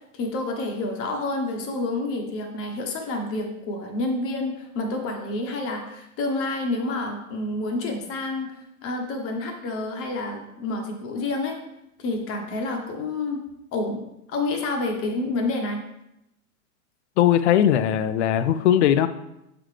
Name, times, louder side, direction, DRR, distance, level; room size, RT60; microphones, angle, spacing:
voice 1, 0.1-8.5 8.8-11.6 12.0-13.4 13.7-14.0 14.3-15.8, left 2 dB, 30° left, 3 dB, 1.0 m, -28 dB
voice 2, 17.2-19.1, left 10 dB, 55° left, 11 dB, 0.5 m, -19 dB
7.7 x 4.0 x 3.3 m, 0.85 s
hypercardioid pair, 130°, 44 cm